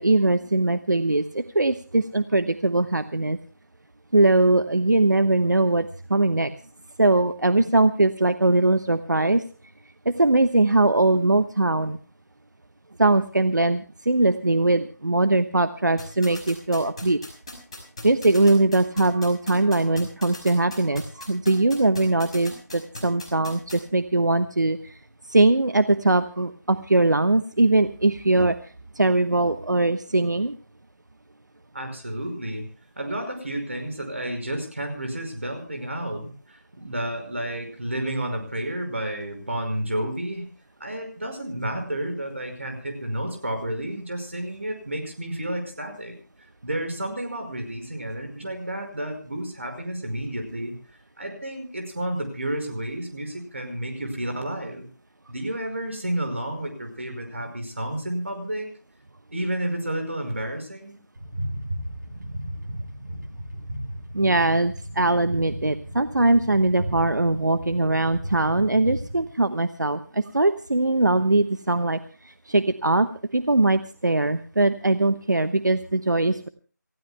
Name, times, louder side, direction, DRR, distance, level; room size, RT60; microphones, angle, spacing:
voice 1, 0.0-3.4 4.1-6.5 7.0-9.4 10.0-12.0 13.0-17.2 18.0-25.0 25.3-30.5 64.1-73.1 73.3-76.5, right 2 dB, 70° right, 11 dB, 1.1 m, -21 dB
sound 1, 16.0-23.8, left 2 dB, 20° left, 5.8 m, -38 dB
voice 2, 31.7-32.7 33.0-40.4 40.8-46.1 46.6-50.7 51.2-54.9 55.3-58.7 59.3-61.0, right 1 dB, 40° right, 5 dB, 5.5 m, -31 dB
sound 2, 61.2-69.2, right 1 dB, 25° right, 5.9 m, -35 dB
29.0 x 15.5 x 2.2 m, 0.38 s
figure-of-eight pair, 180°, 10 cm